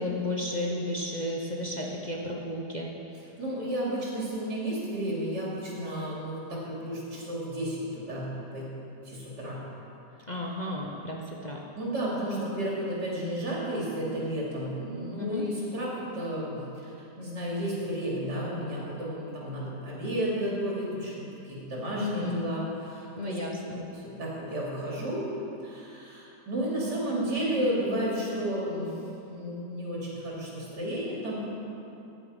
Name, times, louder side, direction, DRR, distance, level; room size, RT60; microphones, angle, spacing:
voice 1, 0.0-2.9 10.3-11.6 15.2-15.5 22.0-22.4 23.2-23.8, left 1 dB, 30° left, -2 dB, 1.0 m, -33 dB
voice 2, 3.4-8.7 9.0-9.6 11.8-23.4 23.7-25.3 25.6-28.9 29.3-31.5, right 1 dB, 80° right, -6 dB, 3.9 m, -32 dB
15.0 x 10.5 x 5.4 m, 2.8 s
omnidirectional pair, 1.8 m